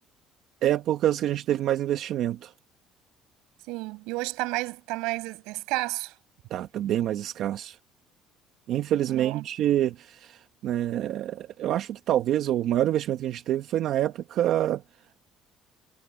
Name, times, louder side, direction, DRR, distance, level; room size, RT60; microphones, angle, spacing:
voice 1, 0.6-2.5 6.5-7.8 8.7-14.8, right 12 dB, 60° right, 1.2 m, -26 dB
voice 2, 3.7-6.1 9.1-9.4, right 23 dB, 90° right, 5.4 m, -31 dB
cardioid pair, 130°, 0 cm